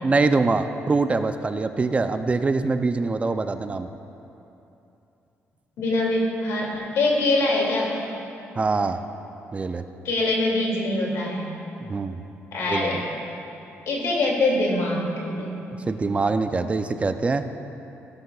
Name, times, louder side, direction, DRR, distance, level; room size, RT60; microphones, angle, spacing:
voice 1, 0.0-3.9 8.6-9.0 9.5-9.8 11.9-12.2 12.7-13.0 15.9-17.5, right 3 dB, 25° right, 9 dB, 0.4 m, -24 dB
voice 2, 5.8-8.0 10.0-11.6 12.5-13.1 13.9-15.6, left 2 dB, 80° left, -2 dB, 2.4 m, -24 dB
16.5 x 11.0 x 2.3 m, 2.9 s
cardioid pair, 110°, 5 cm